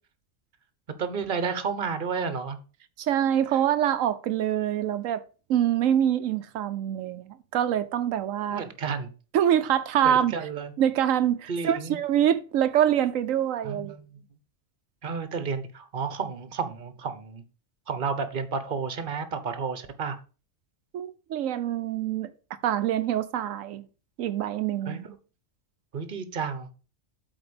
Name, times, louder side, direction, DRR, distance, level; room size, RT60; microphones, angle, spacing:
voice 1, 1.0-2.6 8.5-9.1 10.0-10.7 11.5-12.0 13.6-14.2 15.0-17.4 17.9-20.2 24.8-25.1 25.9-26.7, right 5 dB, 45° right, 1.2 m, -31 dB
voice 2, 3.0-5.2 5.5-8.6 9.3-10.3 10.8-14.0 20.9-22.3 22.6-23.8 24.2-25.0, right 10 dB, 90° right, 1.1 m, -25 dB
8.1 x 4.3 x 6.9 m
omnidirectional pair, 1.3 m